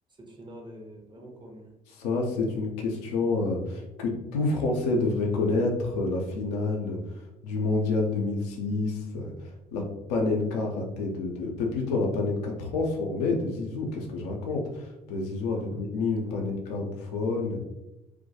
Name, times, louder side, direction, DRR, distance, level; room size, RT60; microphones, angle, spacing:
voice 1, 0.2-1.7 15.5-15.8 16.2-16.6, right 1 dB, 25° right, 0 dB, 0.7 m, -46 dB
voice 2, 2.0-7.0 7.4-17.6, left 3 dB, 75° left, 1 dB, 0.5 m, -28 dB
2.2 x 2.2 x 2.7 m, 0.90 s
hypercardioid pair, 50°, 20 cm